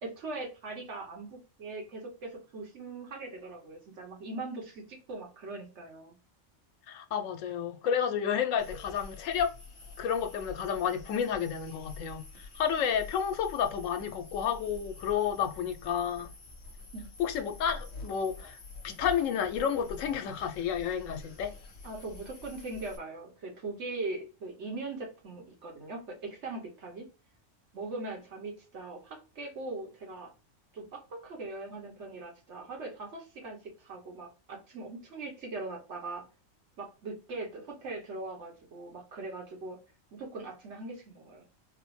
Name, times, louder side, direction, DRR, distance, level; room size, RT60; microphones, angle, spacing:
voice 1, 0.0-6.2 16.9-17.1 21.8-27.1 27.7-30.3 30.7-36.2 36.8-39.8 40.1-41.4, right 3 dB, 65° right, 1.3 m, -40 dB
voice 2, 6.9-9.5 10.0-16.3 17.2-18.6 18.8-21.5, left 8 dB, 85° left, 0.9 m, -31 dB
sound 1, 8.6-23.0, left 3 dB, 60° left, 0.9 m, -47 dB
4.0 x 2.0 x 3.1 m
omnidirectional pair, 1.3 m